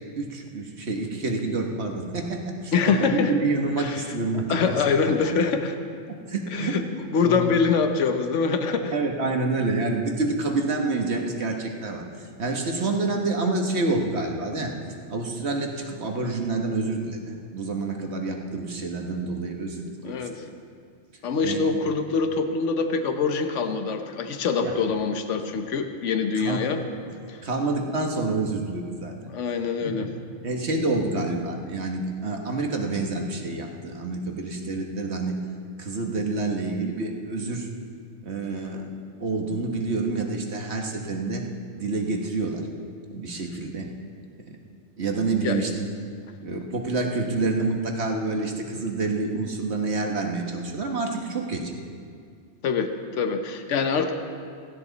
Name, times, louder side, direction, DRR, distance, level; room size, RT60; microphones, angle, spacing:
voice 1, 0.2-4.8 6.1-6.8 7.2-7.5 8.9-12.1 12.4-14.8 15.1-20.5 21.4-21.7 24.6-24.8 26.4-26.6 27.4-29.3 29.8-30.1 30.4-35.4 35.8-37.7 38.2-38.9 39.2-41.5 41.8-42.7 43.1-43.9 45.0-45.9 46.4-51.7, right 3 dB, 65° right, 2 dB, 1.7 m, -28 dB
voice 2, 2.7-3.3 3.8-4.1 4.5-5.8 6.5-8.9 20.0-20.5 21.2-26.8 27.3-27.4 29.3-30.1 45.4-45.6 52.6-54.1, left 5 dB, 85° left, 7 dB, 1.2 m, -24 dB
16.5 x 16.0 x 4.0 m, 2.2 s
omnidirectional pair, 1.2 m